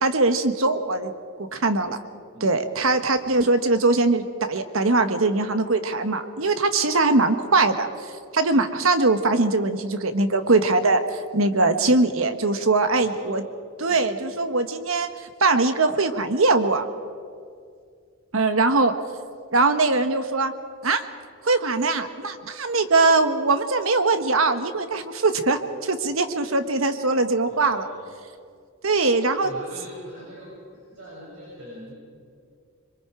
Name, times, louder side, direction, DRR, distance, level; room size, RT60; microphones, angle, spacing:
voice 1, 0.0-1.1 1.4-2.0 2.4-7.9 8.3-13.4 13.8-15.1 15.4-16.8 18.3-18.9 19.5-20.5 20.8-21.0 21.4-27.9 28.8-29.5, right 3 dB, 80° right, 9 dB, 1.3 m, -21 dB
voice 2, 12.9-13.3 13.9-14.1 27.5-28.1 29.4-31.9, equal, 65° right, -8 dB, 7.3 m, -43 dB
26.0 x 23.0 x 5.0 m, 2.2 s
head